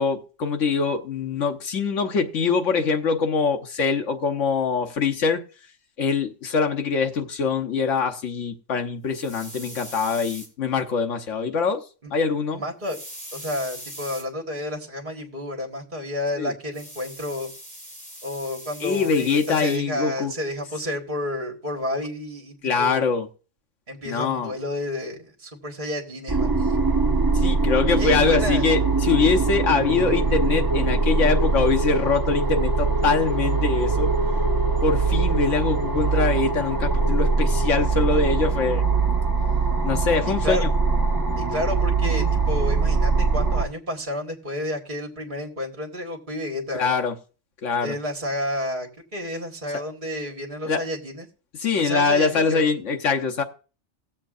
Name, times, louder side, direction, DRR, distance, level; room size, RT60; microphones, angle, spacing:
voice 1, 0.0-5.4 6.0-11.8 12.1-12.6 16.4-16.5 18.8-20.3 22.6-23.3 24.0-24.5 27.3-34.1 34.8-38.8 39.8-40.7 46.7-47.1 47.6-48.0 50.7-50.8 51.6-53.4, left 5 dB, 85° left, 1.4 m, -23 dB
sound 1, 9.1-10.5 12.8-14.2 16.7-19.8, equal, 5° left, 2.5 m, -41 dB
voice 2, 12.5-13.0 13.3-17.5 18.2-23.0 23.9-26.8 28.0-28.7 40.4-40.6 41.4-47.0 47.8-51.3 51.8-52.7, left 1 dB, 40° right, 2.0 m, -30 dB
sound 2, 26.3-43.7, right 4 dB, 20° right, 1.1 m, -22 dB
18.5 x 7.4 x 2.5 m
omnidirectional pair, 1.2 m